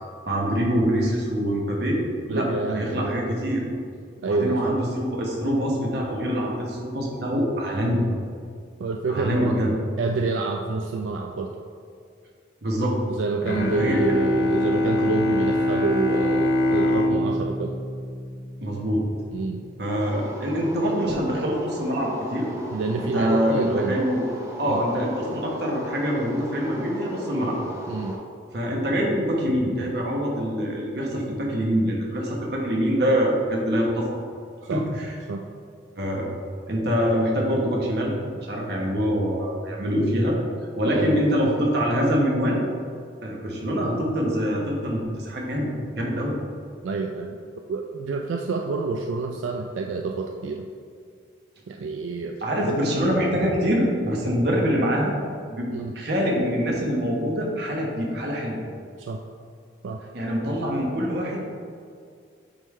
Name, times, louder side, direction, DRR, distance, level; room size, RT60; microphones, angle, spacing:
voice 1, 0.2-2.0 2.3-3.6 4.2-8.0 9.1-9.7 12.6-13.0 13.8-14.0 18.6-19.0 19.8-22.5 23.0-24.2 24.6-27.6 28.5-34.2 34.7-35.1 36.0-36.3 36.7-40.4 40.8-42.6 43.2-46.3 52.4-55.1 55.5-58.6 60.1-61.4, equal, 60° right, -2 dB, 1.1 m, -25 dB
voice 2, 2.3-3.1 4.2-4.7 8.8-9.6 10.0-11.5 13.1-17.8 19.3-19.7 22.7-24.0 24.7-24.8 27.9-28.2 34.6-34.9 35.3-35.4 40.8-41.2 46.8-50.7 51.7-52.8 55.7-55.9 59.0-59.2 59.8-60.0, right 4 dB, 90° right, 3 dB, 0.3 m, -28 dB
Bowed string instrument, 13.4-19.0, left 1 dB, 55° left, 0.5 m, -24 dB
sound 1, 20.0-28.2, equal, 15° right, 0.5 m, -36 dB
8.5 x 3.5 x 3.2 m, 2.2 s
head